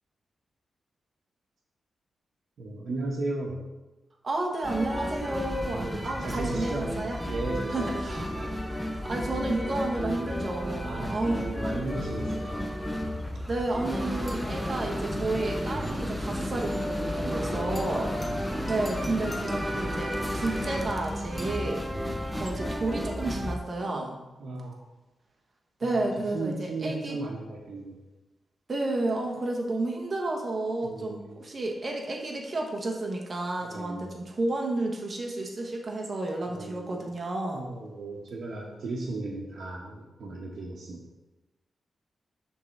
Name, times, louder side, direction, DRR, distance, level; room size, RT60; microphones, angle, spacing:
voice 1, 2.6-3.6 5.7-6.9 7.2-8.5 10.8-12.7 17.2-17.8 18.2-18.7 21.9-22.3 23.8-24.8 25.8-28.0 30.8-31.4 33.6-34.1 36.5-36.9 37.5-41.0, right 2 dB, 60° right, -5 dB, 1.2 m, -36 dB
voice 2, 4.2-7.2 7.7-8.3 8.9-11.4 13.5-18.2 18.7-21.8 22.4-24.2 25.8-27.2 28.7-37.6, right 2 dB, 30° right, 1 dB, 1.2 m, -31 dB
sound 1, 4.6-23.6, equal, ahead, 0.6 m, -32 dB
7.7 x 3.7 x 6.4 m, 1.1 s
wide cardioid pair, 170°, 0 cm